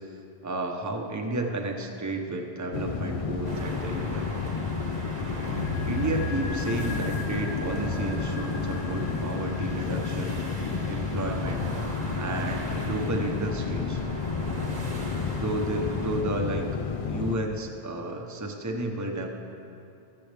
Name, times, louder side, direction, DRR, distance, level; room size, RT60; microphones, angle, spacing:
voice 1, 0.4-4.3 5.8-10.3 10.9-11.7 12.1-14.0 15.4-16.7 17.0-19.3, right 2 dB, 20° right, 2 dB, 0.8 m, -32 dB
sound 1, 2.7-17.4, left 5 dB, 55° left, 0.4 m, -31 dB
sound 2, 3.4-16.2, right 2 dB, 40° right, 1.2 m, -39 dB
sound 3, 5.1-15.4 15.7-15.8, left 3 dB, 70° left, 1.1 m, -39 dB
21.5 x 7.7 x 3.4 m, 2.7 s
omnidirectional pair, 1.1 m